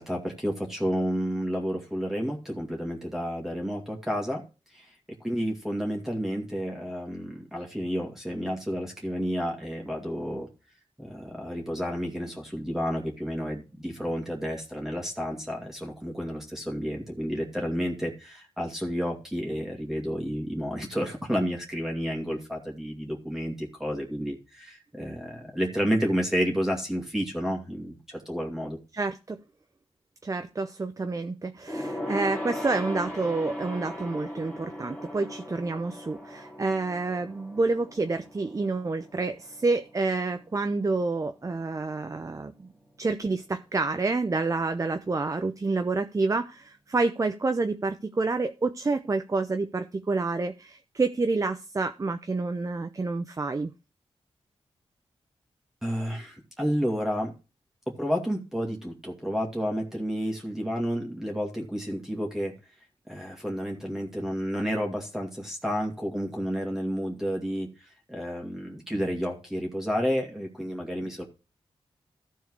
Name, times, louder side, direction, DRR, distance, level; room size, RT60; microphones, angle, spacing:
voice 1, 0.0-4.4 4.7-4.9 5.2-10.5 11.0-28.8 55.8-57.3 58.0-62.5 63.1-71.3, equal, 5° right, 0 dB, 2.2 m, -31 dB
voice 2, 28.9-29.4 30.2-42.7 43.0-53.7, right 3 dB, 30° right, 8 dB, 0.7 m, -28 dB
Gong, 31.7-41.4 41.7-42.0 42.3-42.4, left 1 dB, 15° left, 2.9 m, -39 dB
13.5 x 4.7 x 4.7 m, 0.31 s
cardioid pair, 75°, 11 cm